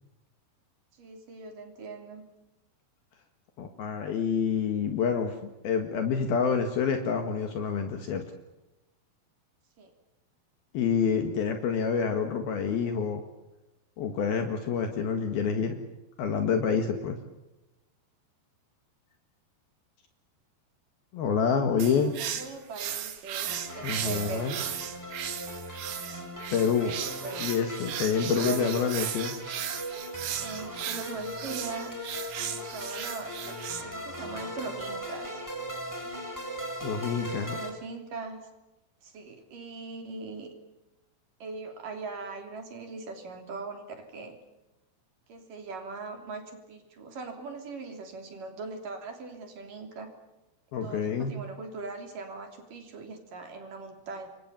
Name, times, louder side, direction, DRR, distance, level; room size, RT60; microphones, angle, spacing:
voice 1, 0.9-2.2 9.8-9.9 22.0-24.7 26.8-27.5 28.1-28.7 30.4-32.0 32.5-35.4 37.1-38.5 39.0-40.5 41.4-44.4 45.3-50.1 50.8-54.3, right 4 dB, 55° right, 5 dB, 4.8 m, -40 dB
voice 2, 3.6-8.3 10.7-13.2 14.0-15.8 16.2-17.2 21.1-22.1 23.8-24.5 26.5-27.0 27.4-29.4 36.8-37.6 50.7-51.4, left 6 dB, 65° left, 6 dB, 3.5 m, -27 dB
sound 1, 21.8-33.8, right 10 dB, 80° right, 4.2 m, -36 dB
sound 2, 23.5-37.7, equal, 5° left, 3.7 m, -39 dB
28.0 x 22.5 x 7.2 m, 1.0 s
omnidirectional pair, 4.9 m